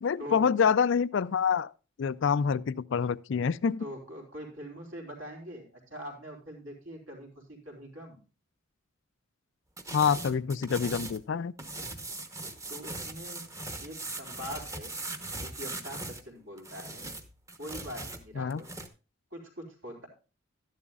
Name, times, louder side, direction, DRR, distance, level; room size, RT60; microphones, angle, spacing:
voice 1, 0.0-1.7 2.0-3.8 9.9-11.5 18.4-18.6, left 6 dB, 60° left, 0.4 m, -26 dB
voice 2, 3.8-8.2 12.7-13.5 13.8-15.0 15.3-17.1 17.6-18.7 19.3-20.1, equal, 75° right, 3.7 m, -43 dB
sound 1, 9.8-11.2 11.6-16.2 16.6-18.9, right 2 dB, 15° right, 0.9 m, -40 dB
12.5 x 11.0 x 2.4 m
head